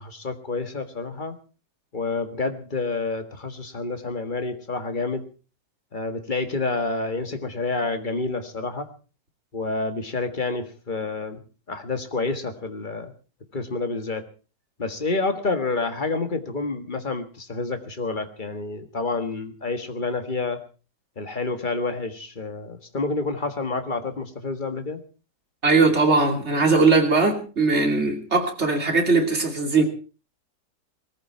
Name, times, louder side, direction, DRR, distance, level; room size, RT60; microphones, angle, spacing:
voice 1, 0.0-1.4 1.9-5.2 5.9-8.9 9.5-11.4 11.7-13.1 13.5-14.3 14.8-20.6 21.2-25.0, left 3 dB, 30° left, 1.7 m, -28 dB
voice 2, 25.6-29.8, right 3 dB, 40° right, 3.1 m, -20 dB
20.0 x 14.5 x 4.4 m
omnidirectional pair, 1.9 m